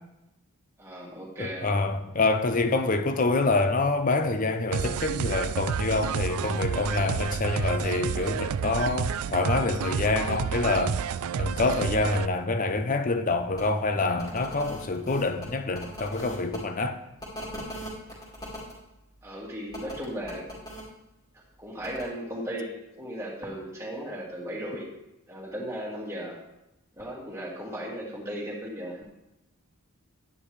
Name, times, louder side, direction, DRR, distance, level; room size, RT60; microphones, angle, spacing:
voice 1, 0.8-1.7 19.2-20.5 21.6-24.9 25.3-26.4 27.0-29.0, equal, 10° right, 2.1 m, -36 dB
voice 2, 1.4-11.0 11.4-17.0, left 3 dB, 35° left, 0.6 m, -26 dB
sound 1, 4.7-12.3, right 7 dB, 80° right, 0.3 m, -30 dB
sound 2, 13.5-13.6 14.1-16.6 17.2-18.7 19.7-20.8 21.8-22.0, equal, 15° left, 2.4 m, -40 dB
10.0 x 9.7 x 3.3 m
head